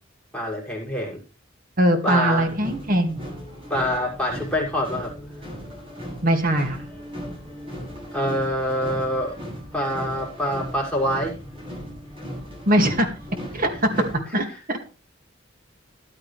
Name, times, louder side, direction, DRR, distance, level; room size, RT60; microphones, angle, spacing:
voice 1, 0.3-1.2 2.0-2.5 3.7-5.1 8.1-9.3 9.7-11.4 13.9-14.6, equal, 5° left, -3 dB, 6.1 m, -26 dB
voice 2, 1.8-3.2 6.2-6.8 12.7-13.1 13.5-13.9 14.3-14.8, right 1 dB, 45° right, 5 dB, 2.4 m, -21 dB
sound 1, 2.3-14.1, equal, 30° right, 7.7 m, -37 dB
14.0 x 11.5 x 3.4 m, 0.35 s
head